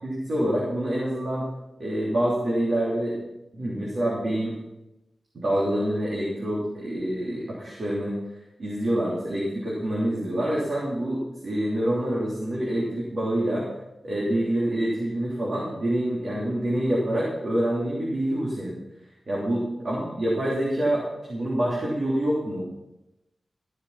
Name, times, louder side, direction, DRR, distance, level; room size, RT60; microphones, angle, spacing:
voice 1, 0.0-1.5 1.8-3.2 3.5-4.6 5.3-8.2 8.6-13.7 14.0-18.8 19.3-22.7, right 1 dB, 65° right, -5 dB, 3.3 m, -26 dB
14.5 x 7.5 x 5.8 m, 0.94 s
wide cardioid pair, 95°, 0 cm